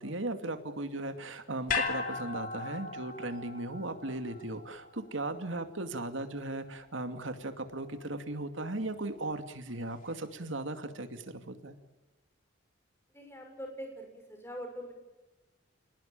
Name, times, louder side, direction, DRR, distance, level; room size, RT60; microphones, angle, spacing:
voice 1, 0.0-11.8, right 2 dB, 75° right, 8 dB, 2.5 m, -37 dB
sound 1, 1.7-6.0 6.3-6.4, left 4 dB, 45° left, 2.8 m, -37 dB
voice 2, 13.1-14.9, equal, 10° left, 4 dB, 6.4 m, -43 dB
28.0 x 19.0 x 9.0 m, 1.1 s
head